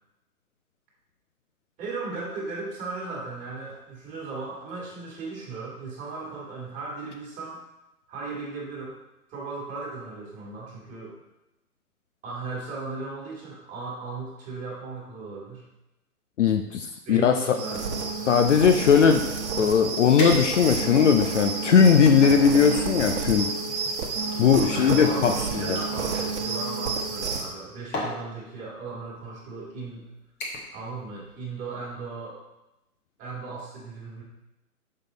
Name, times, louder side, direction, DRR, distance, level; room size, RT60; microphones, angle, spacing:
voice 1, 1.8-7.6 8.1-8.9 9.3-11.2 12.2-15.6 17.0-18.3 24.5-30.0 30.7-32.4 33.2-34.2, right 3 dB, 15° right, -5 dB, 1.9 m, -36 dB
voice 2, 16.4-17.6 18.3-19.2 19.6-23.5 24.4-25.3 25.6-25.8, left 7 dB, 50° left, 6 dB, 0.6 m, -19 dB
sound 1, 17.5-27.5, right 4 dB, 50° right, 1.1 m, -30 dB
sound 2, 20.2-20.9 21.6-22.4 23.4-26.3 27.4-27.6 27.9-28.2 29.1-29.3 29.7-30.0 30.4-30.8 31.1-31.5 31.8-31.9, equal, 15° left, 0.9 m, -35 dB
6.5 x 5.5 x 3.9 m, 0.93 s
hypercardioid pair, 140°, 46 cm